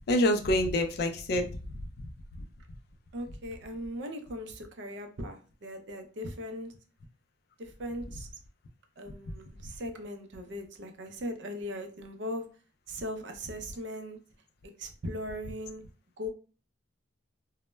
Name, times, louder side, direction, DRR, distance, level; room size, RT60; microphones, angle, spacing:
voice 1, 0.0-2.1 2.3-2.4 9.3-9.4, left 1 dB, 50° left, 7 dB, 0.3 m, -28 dB
voice 2, 3.1-6.7 7.6-8.3 9.0-12.5 12.9-14.2 14.8-15.8 16.2-16.3, equal, 60° right, 5 dB, 0.4 m, -39 dB
2.1 x 2.0 x 3.2 m, 0.37 s
head